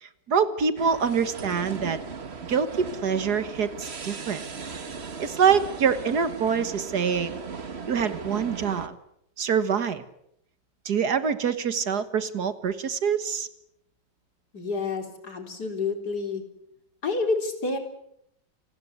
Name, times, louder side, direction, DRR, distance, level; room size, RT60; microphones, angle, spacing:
voice 1, 0.0-2.0 2.5-4.4 5.2-7.4 7.9-9.0 9.4-10.0 10.9-13.5, right 6 dB, 65° right, 12 dB, 2.0 m, -25 dB
sound 1, 0.8-8.9, right 5 dB, 40° right, 1.7 m, -37 dB
voice 2, 14.5-16.4 17.0-17.8, left 3 dB, 65° left, 5 dB, 4.3 m, -29 dB
29.0 x 20.0 x 8.1 m, 0.76 s
omnidirectional pair, 1.9 m